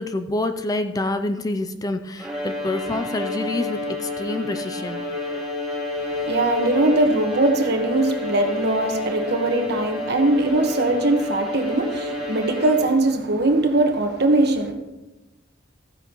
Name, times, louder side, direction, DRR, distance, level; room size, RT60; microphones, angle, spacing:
voice 1, 0.0-5.0, left 2 dB, 20° left, 0.4 m, -27 dB
Bowed string instrument, 2.2-13.2, left 2 dB, 5° right, 2.9 m, -29 dB
voice 2, 6.0-14.7, right 2 dB, 55° right, 1.3 m, -21 dB
15.0 x 10.0 x 3.0 m
head